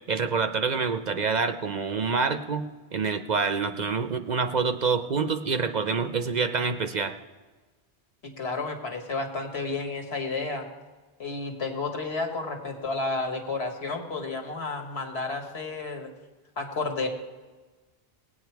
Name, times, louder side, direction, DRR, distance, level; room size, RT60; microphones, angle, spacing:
voice 1, 0.1-2.6 2.9-7.1, right 5 dB, 50° right, 9 dB, 0.6 m, -26 dB
voice 2, 8.2-10.7 11.2-16.1 16.6-17.1, left 3 dB, 80° left, 3 dB, 1.8 m, -31 dB
19.0 x 8.6 x 4.6 m, 1.3 s
omnidirectional pair, 1.1 m